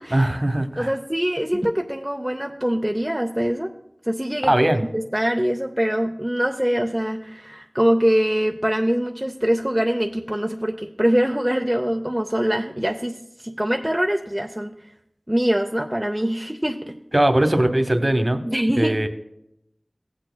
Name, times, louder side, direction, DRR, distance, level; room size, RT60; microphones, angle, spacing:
voice 1, 0.1-0.9 4.4-4.9 17.1-18.4 18.8-19.1, right 1 dB, 35° right, 8 dB, 0.8 m, -20 dB
voice 2, 0.8-3.7 4.1-14.7 15.3-17.0 18.4-19.0, equal, 15° right, 2 dB, 0.5 m, -23 dB
15.5 x 8.4 x 2.2 m, 0.82 s
wide cardioid pair, 50°, 0 cm